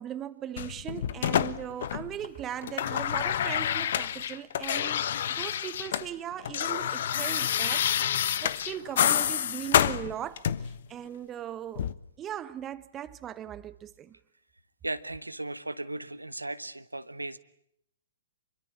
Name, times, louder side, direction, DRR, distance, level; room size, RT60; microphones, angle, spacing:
voice 1, 0.0-11.9 12.2-14.2, right 10 dB, 20° right, 1.2 m, -39 dB
sound 1, 0.6-2.3 2.5-6.1 6.3-10.8 11.7-11.9, left 10 dB, 55° left, 1.2 m, -28 dB
voice 2, 14.8-17.4, right 2 dB, 90° right, 1.3 m, -36 dB
26.5 x 23.5 x 8.5 m
figure-of-eight pair, 120°, 0 cm